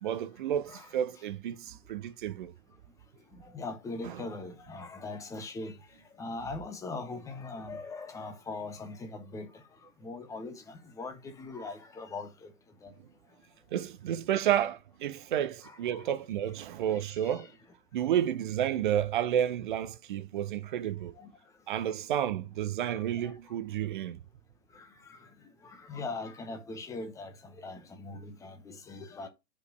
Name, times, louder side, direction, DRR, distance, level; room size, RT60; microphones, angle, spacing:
voice 1, 0.0-2.5 4.0-4.2 13.7-17.5 17.9-21.1 21.7-24.2, right 10 dB, 30° right, 0.6 m, -31 dB
voice 2, 3.5-5.7 6.2-9.5 10.0-12.3 12.8-12.9 15.9-16.0 23.2-23.3 25.9-27.3 27.6-29.3, left 3 dB, 5° left, 0.8 m, -40 dB
5.3 x 4.8 x 6.2 m
figure-of-eight pair, 125°, 48 cm